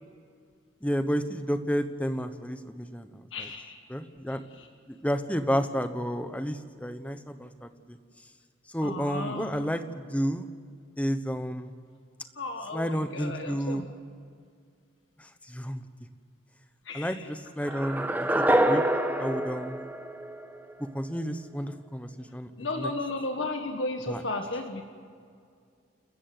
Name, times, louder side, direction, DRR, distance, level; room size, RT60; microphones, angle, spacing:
voice 1, 0.8-3.5 3.9-4.4 4.9-8.0 8.7-10.5 11.0-11.7 12.7-13.8 15.2-15.8 16.9-18.8 19.2-19.8 20.8-22.9 24.1-24.2, equal, 5° left, 9 dB, 1.0 m, -31 dB
voice 2, 3.3-3.7 4.6-4.7 8.8-9.5 12.3-13.9 16.8-17.3 22.6-24.8, left 2 dB, 85° left, 4 dB, 1.5 m, -34 dB
sound 1, 17.6-20.7, right 1 dB, 10° right, 1.0 m, -26 dB
29.5 x 14.0 x 7.8 m, 2.2 s
head